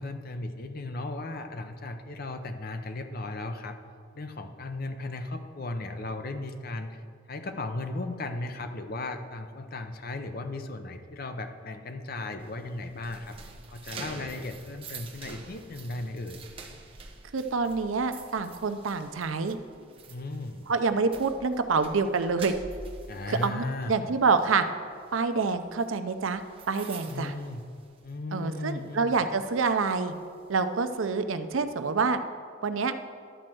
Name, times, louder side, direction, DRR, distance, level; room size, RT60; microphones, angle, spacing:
voice 1, 0.0-3.8 4.1-7.0 7.3-13.4 13.7-16.4 16.7-16.8 20.1-20.7 23.1-23.9 27.1-27.6 28.0-29.2, left 2 dB, 50° left, 7 dB, 0.7 m, -36 dB
sound 1, 12.4-28.3 28.6-28.9 29.4-31.1, right 4 dB, 30° right, 0.8 m, -47 dB
voice 2, 17.3-19.6 20.7-22.5 23.3-24.6 25.1-26.4 26.7-27.3 28.3-30.1 30.5-32.2 32.6-32.9, right 4 dB, 85° right, 10 dB, 0.6 m, -27 dB
11.5 x 4.4 x 7.6 m, 2.1 s
head